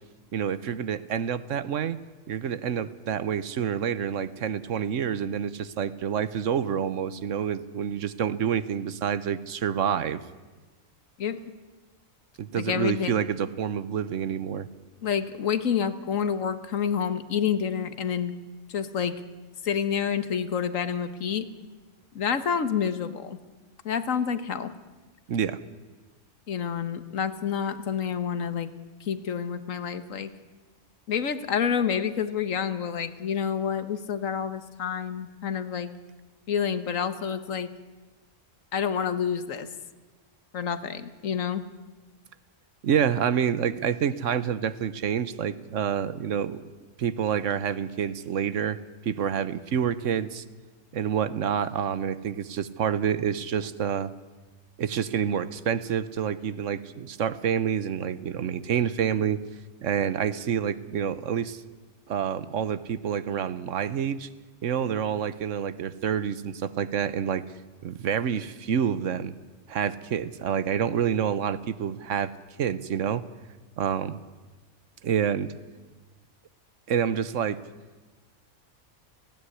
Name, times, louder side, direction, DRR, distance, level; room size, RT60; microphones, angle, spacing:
voice 1, 0.3-2.0 2.3-10.2 12.4-14.7 25.3-25.6 42.8-46.7 47.0-48.8 49.0-50.4 50.9-54.1 54.8-59.4 59.8-61.6 62.1-64.3 64.6-67.4 67.8-69.3 69.7-72.3 72.6-73.2 73.8-74.2 75.0-75.5 76.9-77.6, right 8 dB, 75° right, 16 dB, 1.2 m, -28 dB
voice 2, 12.5-13.1 15.0-18.3 18.7-19.1 19.6-21.5 22.1-23.4 23.8-24.7 26.5-28.7 29.0-30.3 31.1-35.9 36.5-37.7 38.7-39.7 40.5-41.6, left 7 dB, 90° left, 12 dB, 1.6 m, -28 dB
18.5 x 16.5 x 9.8 m, 1.2 s
omnidirectional pair, 1.3 m